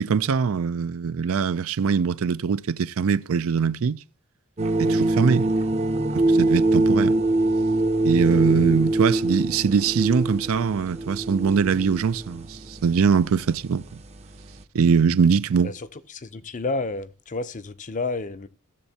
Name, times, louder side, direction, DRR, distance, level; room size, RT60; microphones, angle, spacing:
voice 1, 0.0-4.0 4.8-5.5 6.1-7.2 8.0-13.8 14.7-15.7, right 6 dB, 65° right, 0.4 m, -22 dB
sound 1, 4.6-14.6, right 2 dB, 30° right, 0.7 m, -24 dB
voice 2, 15.6-18.5, left 3 dB, 35° left, 0.6 m, -31 dB
17.5 x 7.2 x 2.8 m
head